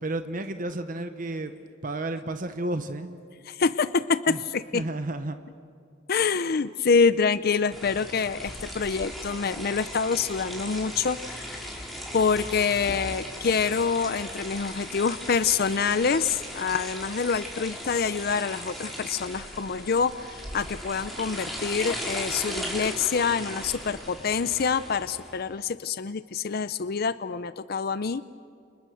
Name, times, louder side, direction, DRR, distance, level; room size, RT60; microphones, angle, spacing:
voice 1, 0.0-1.5 1.8-3.2 4.3-4.4 4.7-5.4, right 2 dB, 45° right, 9 dB, 1.1 m, -32 dB
voice 2, 3.4-4.8 6.1-11.8 12.1-28.2, left 5 dB, 55° left, 14 dB, 0.6 m, -26 dB
sound 1, 7.7-25.4, equal, ahead, 4.6 m, -37 dB
30.0 x 29.0 x 6.4 m, 2.3 s
head